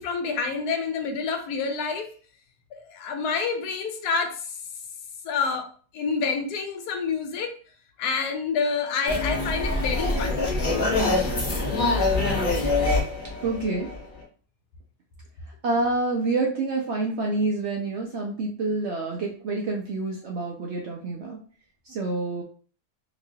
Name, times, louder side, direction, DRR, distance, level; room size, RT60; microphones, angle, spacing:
voice 1, 0.0-2.1 2.8-4.4 5.2-7.5 8.0-10.5, left 5 dB, 75° left, 5 dB, 1.1 m, -28 dB
sound 1, 9.1-14.2, left 2 dB, 40° left, 0.9 m, -24 dB
voice 2, 13.4-13.9 15.6-21.4 21.9-22.4, right 3 dB, 80° right, 0 dB, 0.6 m, -27 dB
3.0 x 2.9 x 2.7 m, 0.41 s
omnidirectional pair, 1.8 m